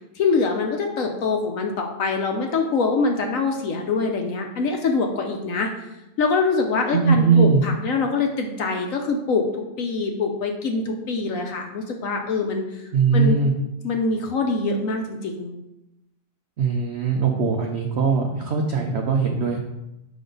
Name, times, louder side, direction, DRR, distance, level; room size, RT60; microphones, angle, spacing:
voice 1, 0.1-5.7 6.2-9.4 9.8-13.4 13.8-15.6, left 4 dB, 60° left, 3 dB, 0.9 m, -24 dB
voice 2, 6.9-7.6 12.9-13.5 16.6-19.6, right 5 dB, 85° right, 3 dB, 0.5 m, -20 dB
6.2 x 5.3 x 3.8 m, 0.91 s
omnidirectional pair, 1.9 m